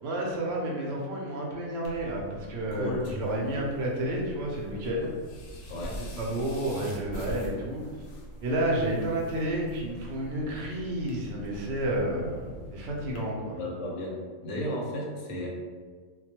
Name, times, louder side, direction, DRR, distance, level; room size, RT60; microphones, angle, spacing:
voice 1, 0.0-5.1 6.0-7.8 8.4-13.6, right 1 dB, 65° right, -2 dB, 0.7 m, -31 dB
sound 1, 1.8-13.2, equal, 85° left, 1.1 m, -42 dB
voice 2, 5.7-6.0 13.5-14.2 14.4-15.5, equal, 65° left, -2 dB, 0.9 m, -34 dB
2.3 x 2.2 x 2.8 m, 1.5 s
omnidirectional pair, 1.4 m